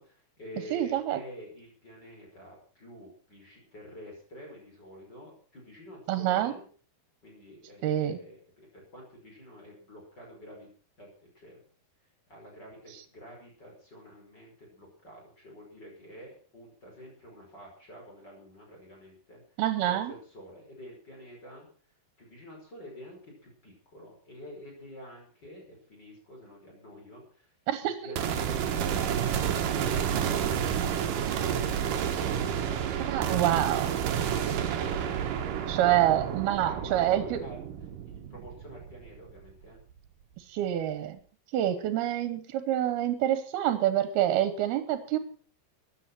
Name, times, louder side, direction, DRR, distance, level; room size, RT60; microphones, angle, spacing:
voice 1, 0.0-6.7 7.2-10.7 11.0-11.6 12.3-19.4 19.9-21.7 22.2-27.5 27.8-36.3 36.6-37.6 38.0-39.8, equal, 25° left, 0 dB, 5.7 m, -48 dB
voice 2, 0.7-1.2 6.1-6.5 7.8-8.2 19.6-20.1 27.7-28.2 32.9-33.9 35.7-37.4 40.5-41.2 41.5-45.2, right 12 dB, 80° right, 11 dB, 3.0 m, -27 dB
sound 1, 28.2-39.5, right 8 dB, 65° right, 2.9 m, -30 dB
15.5 x 10.0 x 6.0 m, 0.43 s
omnidirectional pair, 4.4 m